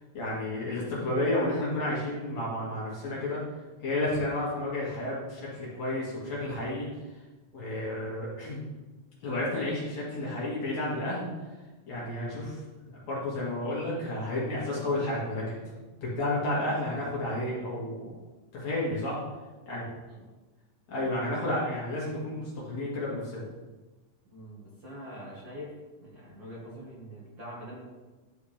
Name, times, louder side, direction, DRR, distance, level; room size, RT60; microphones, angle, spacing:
voice 1, 0.1-3.4 3.8-6.9 7.5-8.6 9.2-11.3 11.9-15.6 16.0-18.1 18.5-19.2 19.7-19.9 20.9-23.5, left 1 dB, 60° left, -6 dB, 3.4 m, -31 dB
voice 2, 24.3-25.7 26.0-27.8, equal, 45° right, -7 dB, 2.1 m, -44 dB
11.5 x 4.8 x 3.4 m, 1.2 s
omnidirectional pair, 3.6 m